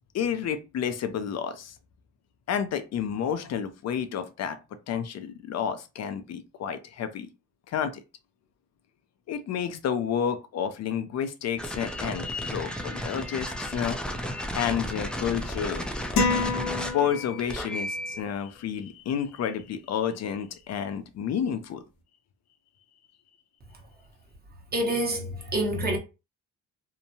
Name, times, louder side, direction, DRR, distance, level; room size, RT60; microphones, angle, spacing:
voice 1, 0.1-1.7 2.5-4.6 4.9-7.3 7.7-8.0 9.3-14.0 14.5-15.9 16.9-21.8, left 8 dB, 60° left, 0.5 m, -30 dB
sound 1, 11.6-18.2, equal, 5° left, 0.5 m, -33 dB
sound 2, 16.2-17.7, left 4 dB, 85° left, 0.8 m, -27 dB
voice 2, 24.7-26.0, right 1 dB, 30° right, 1.1 m, -27 dB
2.8 x 2.1 x 2.7 m
cardioid pair, 90°, 30 cm